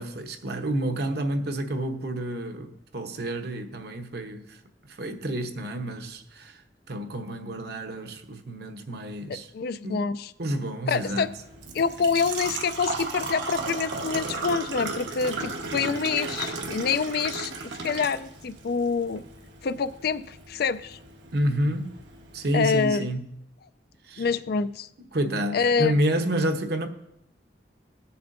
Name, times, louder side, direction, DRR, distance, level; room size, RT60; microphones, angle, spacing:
voice 1, 0.0-4.6 4.9-6.6 6.9-9.5 9.8-10.1 10.4-11.3 21.3-21.9 22.3-23.2 24.1-24.3 25.1-26.9, right 1 dB, 65° right, 0.9 m, -29 dB
voice 2, 9.3-10.3 10.9-11.3 11.7-19.2 19.6-21.0 22.5-23.1 24.2-24.9 25.5-25.9, left 5 dB, 60° left, 0.4 m, -26 dB
Engine / Trickle dribble / Fill (with liquid), 10.9-22.9, right 3 dB, 85° right, 1.2 m, -35 dB
18.0 x 6.9 x 2.6 m
head